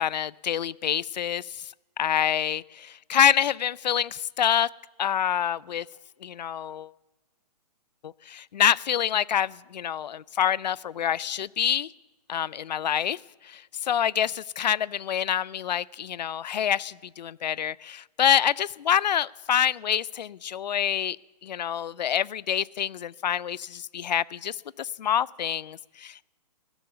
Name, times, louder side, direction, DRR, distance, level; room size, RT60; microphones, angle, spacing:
voice 1, 0.0-1.4 2.0-4.7 5.0-5.8 6.2-6.9 8.0-11.9 12.3-13.2 13.8-21.2 21.4-26.2, left 9 dB, 85° left, 24 dB, 0.5 m, -26 dB
16.5 x 11.5 x 6.8 m, 1.1 s
hypercardioid pair, 165°, 21 cm